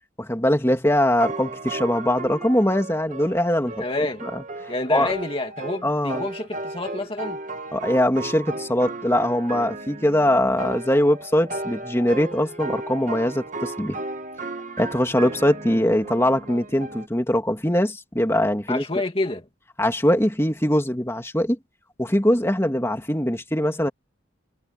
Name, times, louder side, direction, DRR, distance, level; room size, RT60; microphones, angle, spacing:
voice 1, 0.2-4.4 4.9-5.1 5.8-6.3 7.7-14.0 14.8-18.8 19.8-21.6 22.0-23.9, left 1 dB, 15° left, 2.7 m, -22 dB
sound 1, 1.2-17.1, right 2 dB, 40° right, 1.5 m, -35 dB
voice 2, 3.8-4.2 4.7-7.4 18.7-19.4, left 2 dB, 30° left, 2.4 m, -28 dB
head